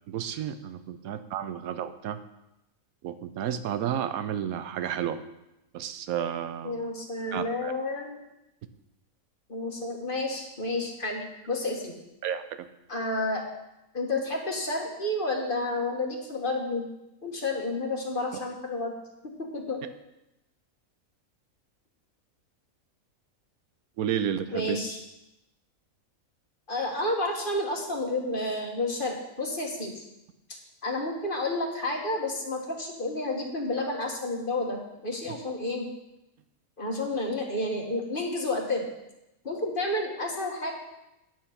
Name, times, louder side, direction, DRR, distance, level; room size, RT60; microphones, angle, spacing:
voice 1, 0.1-2.2 3.0-5.2 5.7-6.8 7.3-7.7 12.2-12.7 24.0-24.8, right 9 dB, 85° right, 11 dB, 1.1 m, -31 dB
voice 2, 6.6-8.2 9.5-12.0 12.9-13.4 13.9-16.9 17.2-18.9 19.4-19.8 24.5-25.0 26.7-30.0 30.5-35.9 36.8-38.9 39.4-40.7, left 2 dB, 40° left, 1 dB, 1.5 m, -30 dB
9.4 x 7.4 x 5.7 m, 0.91 s
omnidirectional pair, 1.5 m